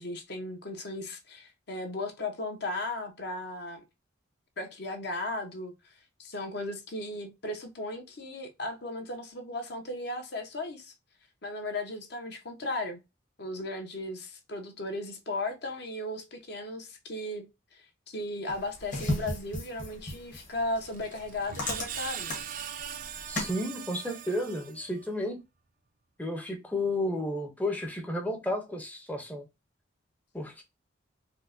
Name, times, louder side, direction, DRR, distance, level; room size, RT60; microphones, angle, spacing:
voice 1, 0.0-3.8 4.6-5.7 6.2-10.9 11.4-13.0 13.4-17.4 17.7-22.4, left 2 dB, 55° left, 0.7 m, -36 dB
sound 1, 18.5-23.6, left 1 dB, 40° left, 1.2 m, -36 dB
Screech, 20.8-25.1, right 9 dB, 45° right, 0.3 m, -41 dB
voice 2, 23.3-25.4 26.2-29.4 30.3-30.6, left 1 dB, 10° left, 0.5 m, -32 dB
4.3 x 2.1 x 2.5 m
head